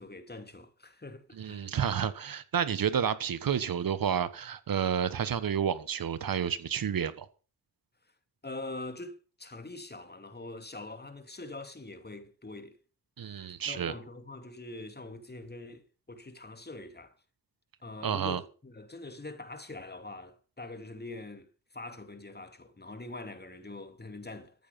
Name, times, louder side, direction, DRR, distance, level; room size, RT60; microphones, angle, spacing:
voice 1, 0.0-1.7 8.4-12.8 13.2-17.2 17.8-24.7, left 2 dB, 25° left, 2.9 m, -44 dB
voice 2, 1.4-7.3 13.2-13.9 18.0-18.4, right 8 dB, 65° right, 1.4 m, -30 dB
14.0 x 9.5 x 5.8 m
supercardioid pair, 45°, 37 cm